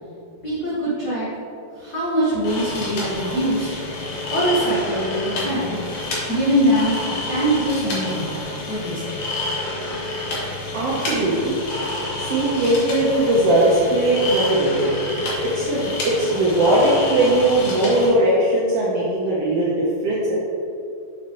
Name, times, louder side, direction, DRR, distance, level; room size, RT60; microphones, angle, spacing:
voice 1, 0.4-1.3 1.7-3.7 4.3-5.8 6.3-6.9 7.3-9.1, equal, 80° left, -9 dB, 0.9 m, -22 dB
sound 1, 2.4-18.1, left 2 dB, 65° left, 2.3 m, -29 dB
voice 2, 10.7-11.6 12.2-15.0 15.4-19.8 20.0-20.4, right 1 dB, 80° right, -6 dB, 1.4 m, -19 dB
6.4 x 6.2 x 2.9 m, 2.6 s
omnidirectional pair, 3.9 m